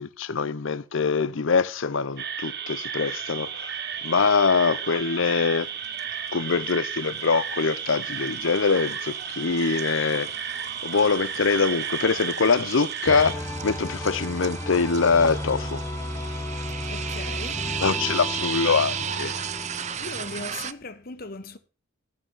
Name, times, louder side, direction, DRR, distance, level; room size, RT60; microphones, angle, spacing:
voice 1, 0.0-3.7 4.0-5.7 6.3-10.3 10.8-15.8 17.8-19.3, left 4 dB, 65° left, 0.6 m, -24 dB
sound 1, 2.2-13.3, right 8 dB, 50° right, 1.1 m, -33 dB
sound 2, 4.4-4.9 5.2-20.7, right 8 dB, 35° right, 0.4 m, -36 dB
sound 3, 13.1-20.4, left 1 dB, 10° left, 0.8 m, -34 dB
voice 2, 16.6-17.6 20.0-21.6, left 3 dB, 45° left, 1.1 m, -38 dB
13.5 x 5.9 x 5.5 m
head